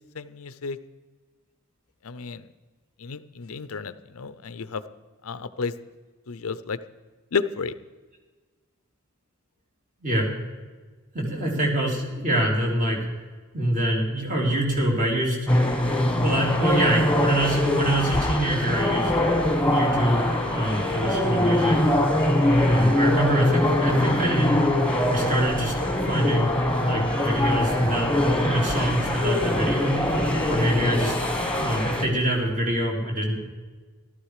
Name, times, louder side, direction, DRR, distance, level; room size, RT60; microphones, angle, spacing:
voice 1, 0.1-0.8 2.0-2.5 3.0-4.8 5.2-5.7 6.3-6.8 7.3-7.7 30.9-31.1, left 5 dB, 70° left, 14 dB, 0.6 m, -32 dB
voice 2, 10.0-10.3 11.1-13.1 13.5-15.4 16.0-19.1 19.7-21.8 22.6-24.6 25.1-25.7 26.1-28.1 28.4-30.0 30.5-31.1 31.6-33.4, right 1 dB, 35° right, -1 dB, 3.4 m, -25 dB
sound 1, 15.5-32.0, left 1 dB, 5° left, 1.6 m, -23 dB
14.5 x 12.5 x 4.9 m, 1.4 s
head